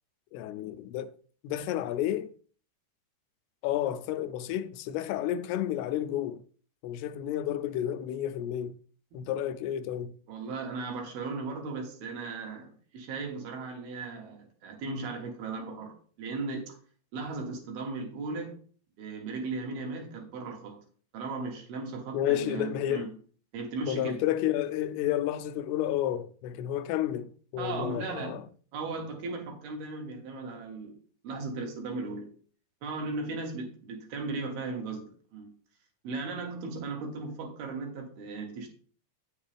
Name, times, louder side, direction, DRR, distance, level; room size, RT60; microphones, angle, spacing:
voice 1, 0.3-1.1 1.4-2.3 3.6-6.4 6.8-8.7 9.1-10.1 22.1-23.1 23.9-28.4, left 12 dB, 85° left, 2.5 m, -31 dB
voice 2, 10.3-16.8 17.1-18.6 19.0-20.8 21.1-23.1 23.5-24.2 27.6-28.4 28.7-31.0 31.2-32.3 32.8-35.5 36.0-38.7, right 3 dB, 75° right, 3.2 m, -37 dB
8.8 x 6.7 x 3.4 m
omnidirectional pair, 4.6 m